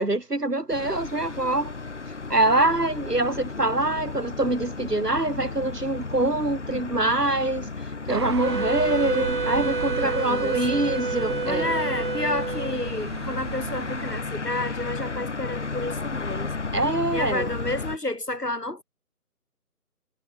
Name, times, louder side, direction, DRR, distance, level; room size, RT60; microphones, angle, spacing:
voice 1, 0.0-1.7 2.3-7.7 8.1-11.7 16.7-17.5, right 2 dB, 85° right, 5.1 m, -24 dB
sound 1, 0.7-18.0, left 4 dB, 50° left, 7.5 m, -34 dB
sound 2, 8.1-14.2, right 7 dB, 15° right, 2.2 m, -36 dB
Wind instrument woodwind instrument, 8.4-13.0, right 3 dB, 35° right, 1.1 m, -29 dB
voice 2, 10.0-10.9 11.4-16.5 17.1-18.8, left 2 dB, 85° left, 6.7 m, -31 dB
figure-of-eight pair, 160°, 46 cm